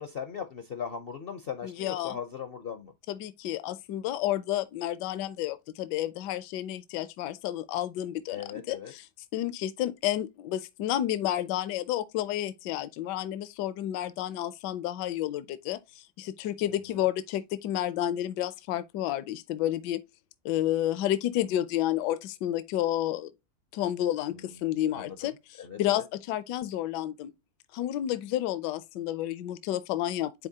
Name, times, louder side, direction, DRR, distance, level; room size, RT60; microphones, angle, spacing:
voice 1, 0.0-2.9 8.3-8.9 16.9-17.0 24.3-24.5 24.9-25.3 25.6-26.0, left 7 dB, 60° left, 0.6 m, -38 dB
voice 2, 1.6-2.2 3.1-9.1 9.3-20.0 20.4-23.3 23.7-27.3 27.7-30.5, left 12 dB, 80° left, 1.2 m, -31 dB
9.8 x 4.0 x 2.7 m
omnidirectional pair, 1.8 m